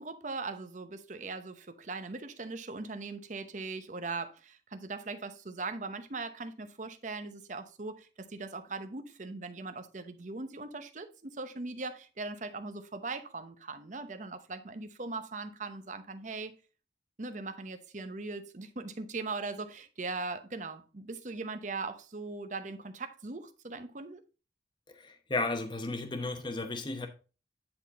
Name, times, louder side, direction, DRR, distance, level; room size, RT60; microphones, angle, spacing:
voice 1, 0.0-16.5 17.2-24.2, right 3 dB, 45° right, 0.8 m, -40 dB
voice 2, 24.9-27.1, left 2 dB, 25° left, 0.9 m, -34 dB
9.7 x 4.1 x 4.1 m
head